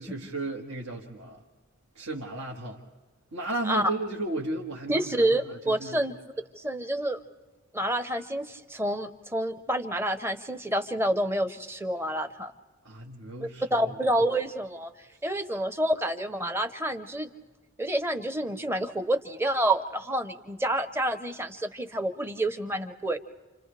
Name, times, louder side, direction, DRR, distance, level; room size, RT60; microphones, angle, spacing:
voice 1, 0.0-1.4 2.0-2.8 3.3-6.0 12.8-14.0, right 2 dB, 65° right, -2 dB, 1.8 m, -35 dB
voice 2, 4.9-6.2 6.6-7.2 7.7-12.5 13.4-14.9 15.2-17.3 17.8-23.2, right 1 dB, 10° right, 9 dB, 0.8 m, -28 dB
29.5 x 28.5 x 3.4 m, 1.3 s
head